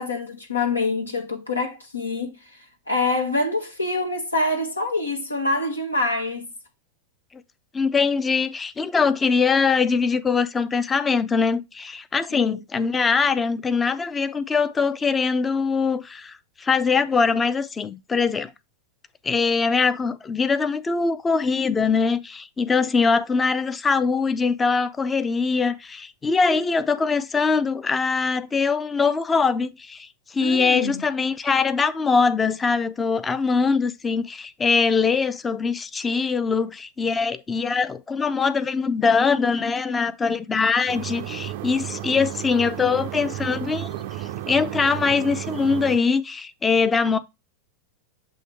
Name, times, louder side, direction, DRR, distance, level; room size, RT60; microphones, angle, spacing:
voice 1, 0.0-2.3 2.9-6.5 12.3-12.6 30.4-31.0, left 2 dB, 80° left, 1.0 m, -25 dB
voice 2, 7.7-18.5 19.2-30.1 30.3-43.9 44.2-47.2, left 5 dB, 15° left, 0.5 m, -22 dB
sound 1, 40.9-46.0, right 13 dB, 50° right, 0.5 m, -33 dB
7.8 x 2.8 x 4.5 m
figure-of-eight pair, 90°, 0 cm